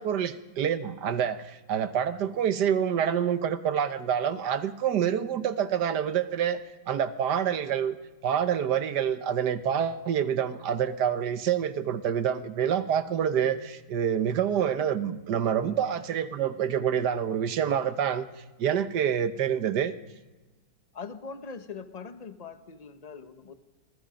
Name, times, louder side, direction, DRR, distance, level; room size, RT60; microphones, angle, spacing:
voice 1, 0.0-6.6 6.9-8.0 8.2-18.3 18.6-19.9, right 8 dB, 65° right, 13 dB, 1.5 m, -27 dB
voice 2, 20.9-23.5, left 5 dB, 25° left, 11 dB, 1.0 m, -41 dB
27.5 x 21.0 x 5.2 m, 1.2 s
omnidirectional pair, 2.0 m